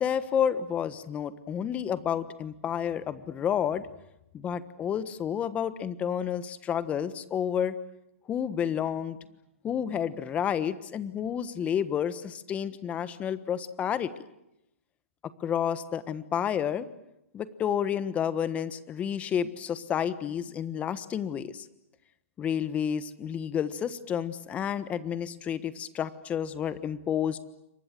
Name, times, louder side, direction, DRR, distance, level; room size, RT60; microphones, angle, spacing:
voice 1, 0.0-3.9 4.3-7.8 8.3-9.2 9.6-14.1 15.4-16.9 17.3-21.7 22.4-27.4, left 8 dB, 20° left, 14 dB, 1.3 m, -30 dB
29.0 x 25.0 x 7.7 m, 0.87 s
hypercardioid pair, 145°, 8 cm